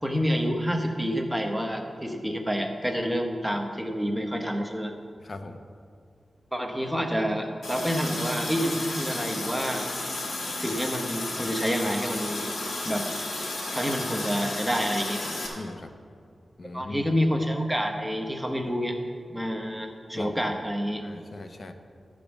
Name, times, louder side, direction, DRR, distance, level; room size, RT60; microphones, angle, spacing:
voice 1, 0.0-4.9 6.5-9.9 10.6-12.5 12.8-13.1 13.7-15.2 16.7-19.0 19.3-21.0, equal, 5° right, 3 dB, 0.9 m, -28 dB
voice 2, 5.2-5.6 15.5-15.9 16.6-17.1 20.1-20.4 21.0-21.7, left 2 dB, 40° left, 7 dB, 0.7 m, -39 dB
Water tap faucet, 7.6-15.5, left 2 dB, 85° left, 2.4 m, -33 dB
13.0 x 5.2 x 7.0 m, 2.3 s
wide cardioid pair, 170°, 0 cm